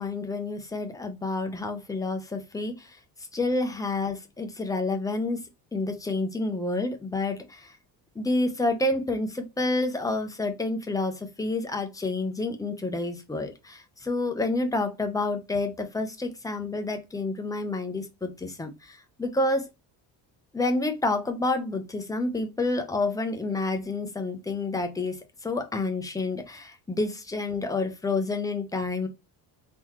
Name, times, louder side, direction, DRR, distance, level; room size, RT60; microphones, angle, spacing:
voice 1, 0.0-3.0 3.3-5.4 5.7-7.7 8.1-19.7 20.5-25.2 25.4-29.1, left 2 dB, 10° left, 0.6 m, -29 dB
3.9 x 2.9 x 3.0 m
cardioid pair, 150°, 41 cm